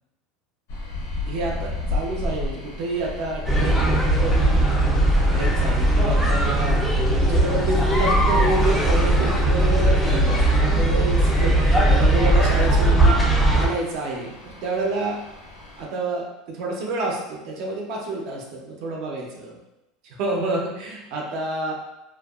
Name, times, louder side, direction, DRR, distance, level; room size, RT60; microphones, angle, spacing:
sound 1, 0.7-15.9, left 2 dB, 70° left, 0.6 m, -32 dB
voice 1, 1.3-6.8 7.1-15.2 15.8-19.6 20.1-21.7, right 2 dB, 50° right, -1 dB, 0.5 m, -29 dB
sound 2, 3.5-13.7, right 1 dB, 5° left, 0.3 m, -19 dB
2.7 x 2.2 x 2.3 m, 0.93 s
cardioid pair, 175°, 0 cm